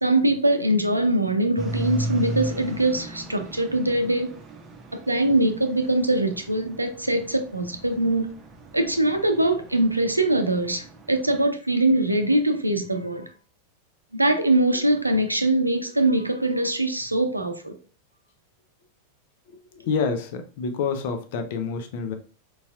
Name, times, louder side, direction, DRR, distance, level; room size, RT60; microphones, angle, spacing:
voice 1, 0.0-4.3 4.9-8.3 8.7-13.3 14.1-17.8, right 1 dB, 85° right, 0.5 m, -22 dB
sound 1, 1.6-11.5, right 2 dB, 25° right, 0.7 m, -36 dB
voice 2, 19.5-22.1, left 5 dB, 50° left, 0.6 m, -28 dB
4.6 x 4.1 x 2.3 m
figure-of-eight pair, 90°, 0 cm